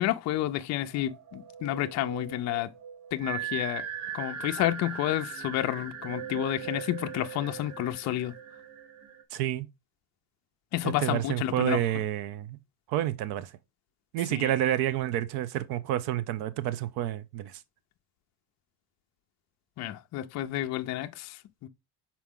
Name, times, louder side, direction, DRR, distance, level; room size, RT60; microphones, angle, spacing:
voice 1, 0.0-2.7 3.1-3.9 4.1-8.3 10.7-11.8 14.3-14.5 19.8-21.7, left 14 dB, 45° left, 0.5 m, -30 dB
sound 1, 0.9-9.2, right 8 dB, 40° right, 0.8 m, -39 dB
voice 2, 9.3-9.7 10.8-12.6 12.9-13.5 14.1-17.6, right 12 dB, 80° right, 0.7 m, -29 dB
6.1 x 4.3 x 3.6 m
cardioid pair, 160°, 38 cm